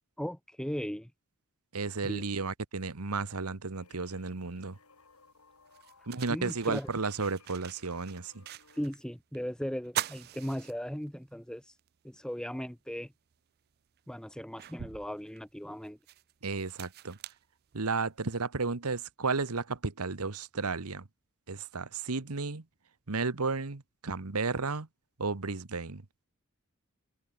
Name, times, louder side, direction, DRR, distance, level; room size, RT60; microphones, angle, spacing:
voice 1, 0.2-1.1 2.0-2.2 6.3-6.9 8.8-11.6 12.0-13.1 14.1-16.0, equal, 5° left, 1.3 m, -37 dB
voice 2, 1.7-4.8 6.1-8.4 16.4-17.2 17.7-21.0 21.5-22.6 23.1-24.9 25.2-26.0, right 4 dB, 85° right, 1.3 m, -33 dB
sound 1, 3.7-8.9, left 4 dB, 90° left, 7.6 m, -61 dB
sound 2, 5.0-5.1 5.7-9.0 9.3-9.4 9.8-11.3 11.8-11.9 13.3-13.4 14.0-18.2, right 11 dB, 45° right, 0.4 m, -42 dB
head